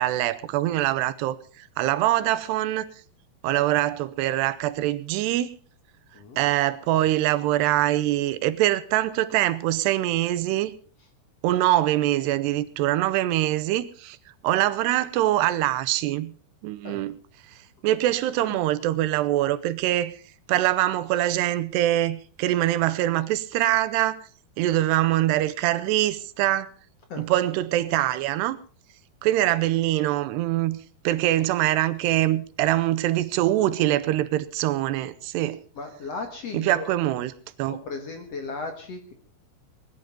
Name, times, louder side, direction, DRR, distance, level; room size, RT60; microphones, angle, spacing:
voice 1, 0.0-2.9 3.4-5.6 6.4-10.7 11.4-14.2 14.4-16.3 16.6-17.2 17.8-20.2 20.5-24.3 24.6-26.7 27.2-28.6 29.2-30.8 31.0-35.6 36.5-37.3 37.6-37.8, right 14 dB, 85° right, 2.9 m, -24 dB
voice 2, 35.8-36.9 37.7-39.1, left 3 dB, 50° left, 2.2 m, -36 dB
20.5 x 11.0 x 5.2 m
omnidirectional pair, 4.7 m